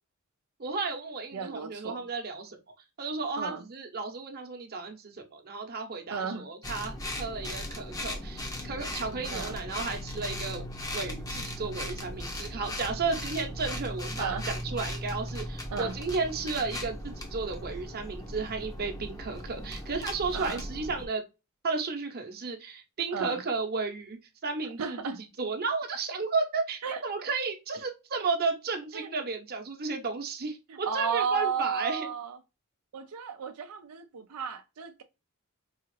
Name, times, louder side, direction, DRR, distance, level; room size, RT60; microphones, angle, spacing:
voice 1, 0.6-2.6 3.0-10.6 10.9-21.2 21.6-32.1, right 4 dB, 45° right, 0.8 m, -33 dB
voice 2, 1.3-2.1 3.4-3.6 6.1-6.5 9.3-9.6 14.2-14.5 15.7-16.0 20.3-20.6 23.1-23.4 24.8-25.2 26.8-27.0 28.9-29.1 30.7-32.4 32.9-35.0, right 6 dB, 90° right, 0.5 m, -33 dB
sound 1, 6.6-21.1, left 1 dB, 15° left, 0.6 m, -37 dB
4.8 x 2.4 x 3.1 m
head